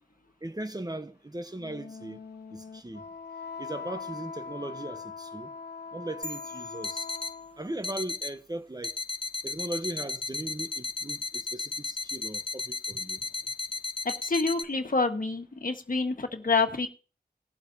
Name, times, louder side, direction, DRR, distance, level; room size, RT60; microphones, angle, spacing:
voice 1, 0.4-2.2 2.5-3.0 3.6-5.5 5.9-7.0 7.6-9.0 9.4-13.2, right 1 dB, 20° right, 1.1 m, -38 dB
Wind instrument woodwind instrument, 1.5-7.8, left 5 dB, 70° left, 1.0 m, -42 dB
sound 1, 6.2-8.0, left 1 dB, 5° left, 1.4 m, -44 dB
sound 2, 6.3-6.4 6.8-7.4 7.8-8.3 8.8-14.6, left 3 dB, 30° left, 0.6 m, -35 dB
voice 2, 14.0-16.9, left 3 dB, 55° left, 1.6 m, -27 dB
20.0 x 7.7 x 2.8 m
cardioid pair, 50°, 17 cm